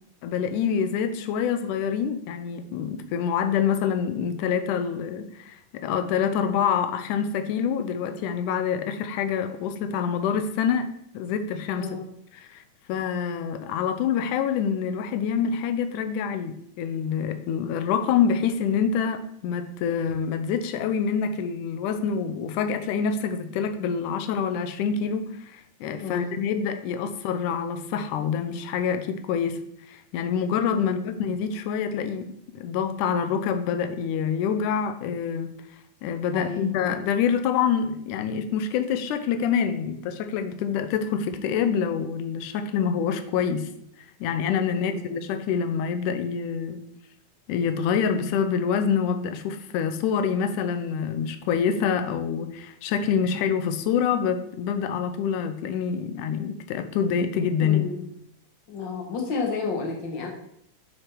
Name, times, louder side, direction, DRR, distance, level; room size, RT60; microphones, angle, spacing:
voice 1, 0.2-10.9 11.1-12.0 12.4-12.6 12.9-29.6 29.9-35.5 36.0-43.7 44.2-46.8 47.5-57.9, left 7 dB, 90° left, 8 dB, 2.1 m, -26 dB
voice 2, 11.8-12.1 26.0-26.6 30.8-31.1 36.3-36.7 44.7-45.1 57.6-58.0 58.7-60.3, left 4 dB, 60° left, 1 dB, 1.2 m, -32 dB
6.5 x 5.9 x 4.5 m, 0.71 s
omnidirectional pair, 3.6 m